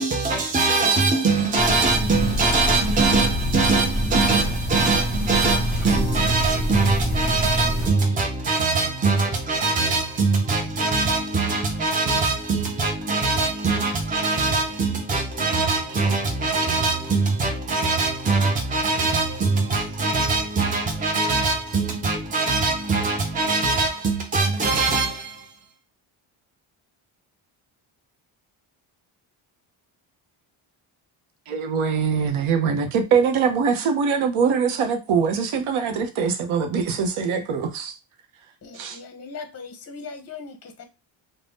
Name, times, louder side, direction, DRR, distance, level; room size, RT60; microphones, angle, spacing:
voice 1, 0.0-25.6, right 3 dB, 20° right, 0.4 m, -22 dB
sound 1, 1.6-7.9, equal, ahead, 1.0 m, -25 dB
voice 2, 31.5-37.9 38.7-39.0, right 6 dB, 75° right, 0.7 m, -23 dB
voice 3, 38.6-40.9, left 4 dB, 30° left, 0.6 m, -39 dB
2.5 x 2.1 x 3.3 m
cardioid pair, 85°, 50 cm